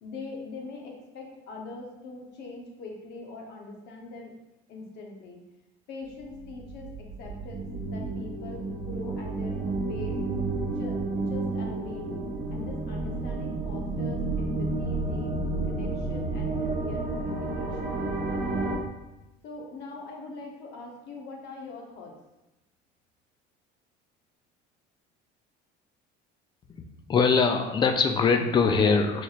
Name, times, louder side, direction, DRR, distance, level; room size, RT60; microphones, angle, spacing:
voice 1, 0.0-4.3 4.7-5.4 5.9-10.2 10.7-15.3 15.7-18.0 19.4-22.1, left 3 dB, 55° left, 0 dB, 0.9 m, -42 dB
sound 1, 6.2-18.8, right 2 dB, 45° right, 1.0 m, -31 dB
voice 2, 26.8-29.2, left 5 dB, 25° left, 6 dB, 0.3 m, -22 dB
4.6 x 2.9 x 2.4 m, 0.97 s
cardioid pair, 125°, 20 cm